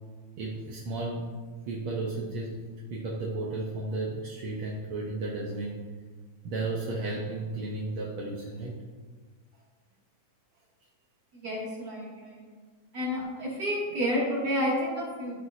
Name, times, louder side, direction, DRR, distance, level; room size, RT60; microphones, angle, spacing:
voice 1, 0.4-1.3 1.7-2.6 2.9-5.8 6.4-8.8, right 2 dB, 65° right, -3 dB, 1.3 m, -33 dB
voice 2, 11.3-12.4 12.9-15.4, equal, 35° right, -6 dB, 2.5 m, -30 dB
12.5 x 5.5 x 2.7 m, 1.4 s
omnidirectional pair, 3.3 m